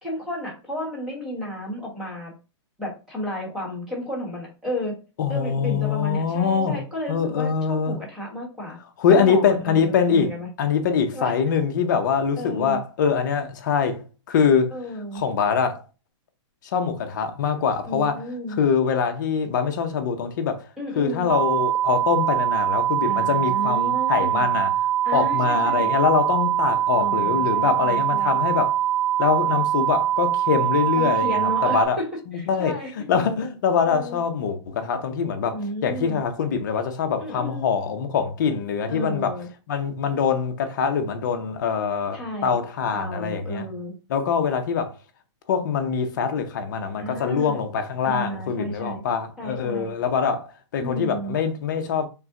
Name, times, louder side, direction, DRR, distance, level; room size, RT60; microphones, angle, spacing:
voice 1, 0.0-2.3 2.8-5.0 5.3-8.8 9.1-10.5 11.1-11.3 12.4-12.8 14.7-15.2 17.9-18.6 20.8-21.4 23.0-24.5 25.0-25.9 27.0-28.4 31.0-32.9 33.8-34.2 35.5-36.2 37.2-37.7 38.9-39.5 42.1-42.6 42.9-43.9 47.0-47.6 48.0-49.0 49.4-49.9 50.8-51.3, equal, 5° right, 1.1 m, -32 dB
voice 2, 5.2-6.8 7.1-8.0 9.0-14.7 15.1-15.8 16.7-18.2 18.6-20.6 21.0-24.7 25.1-28.8 29.2-32.0 32.3-39.3 39.7-43.7 44.1-44.9 45.5-52.1, left 6 dB, 40° left, 0.6 m, -23 dB
sound 1, 21.3-31.8, right 11 dB, 85° right, 0.8 m, -23 dB
5.5 x 2.1 x 3.6 m
hypercardioid pair, 175°, 15 cm